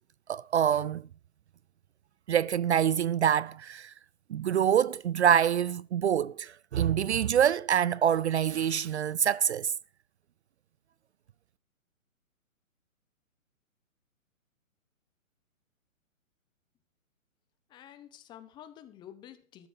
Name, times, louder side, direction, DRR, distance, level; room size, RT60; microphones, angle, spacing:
voice 1, 0.3-1.0 2.3-3.9 4.3-9.7, right 9 dB, 55° right, 0.5 m, -26 dB
voice 2, 17.7-19.7, left 11 dB, 10° left, 0.9 m, -50 dB
14.5 x 13.5 x 3.4 m
hypercardioid pair, 145°, 41 cm